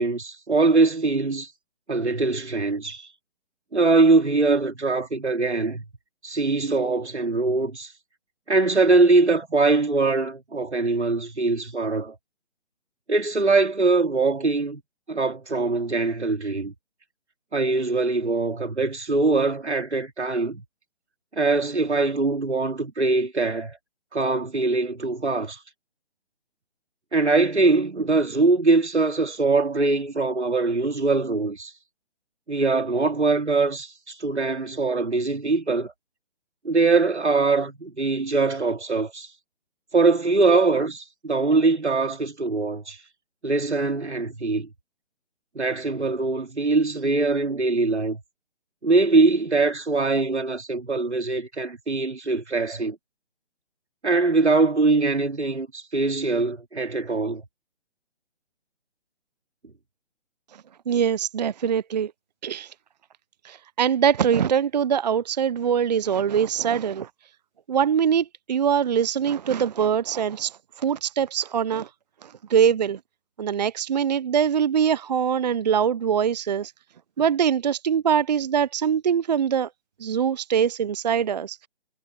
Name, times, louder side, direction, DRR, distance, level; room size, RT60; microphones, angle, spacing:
voice 1, 0.0-1.5 1.9-3.1 3.7-5.8 6.2-7.9 8.5-12.1 13.1-14.8 15.1-16.7 17.5-20.6 21.3-23.8 24.1-25.6 27.1-31.7 32.5-35.9 36.6-39.3 39.9-43.0 43.4-44.7 45.5-48.2 48.8-53.0 54.0-57.4, right 3 dB, 80° right, 3.2 m, -22 dB
voice 2, 60.9-62.1 62.4-62.7 63.4-67.1 67.7-71.9 72.2-73.0 73.4-76.7 77.2-79.7 80.0-81.7, right 8 dB, 40° right, 0.7 m, -23 dB
figure-of-eight pair, 145°, 34 cm